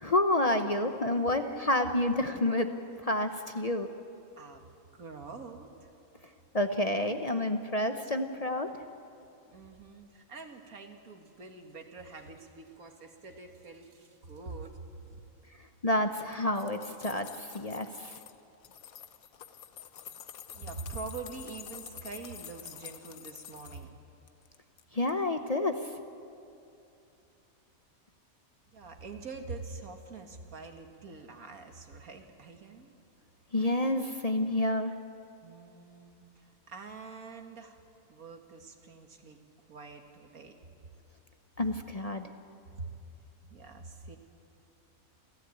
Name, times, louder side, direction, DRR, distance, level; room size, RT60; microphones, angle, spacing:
voice 1, 0.0-2.7 3.0-3.9 6.5-8.7 15.8-18.1 24.9-25.9 33.5-34.9 41.6-42.3, left 1 dB, 35° left, 7 dB, 0.8 m, -29 dB
voice 2, 4.9-5.9 9.5-14.8 20.5-23.9 28.7-32.9 33.6-33.7 35.4-37.8 38.1-39.4 39.7-40.5 42.8-43.0 43.4-44.2, right 4 dB, 85° right, 4 dB, 2.2 m, -45 dB
sound 1, 16.2-18.3 18.6-23.8 24.3-24.8 25.1-25.2, left 9 dB, 85° left, 1.3 m, -48 dB
29.0 x 13.5 x 8.6 m, 2.7 s
omnidirectional pair, 1.5 m